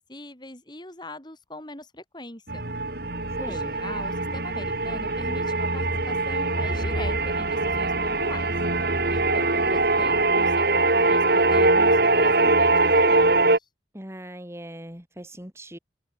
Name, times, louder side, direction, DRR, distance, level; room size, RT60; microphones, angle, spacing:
voice 1, 0.1-2.7 3.3-8.5 9.1-13.3 13.6-13.7, left 1 dB, 25° left, 6.3 m, -41 dB
sound 1, 2.5-13.6, right 2 dB, 60° right, 3.7 m, -22 dB
voice 2, 3.4-3.7 13.9-15.8, right 1 dB, 15° right, 3.0 m, -39 dB
head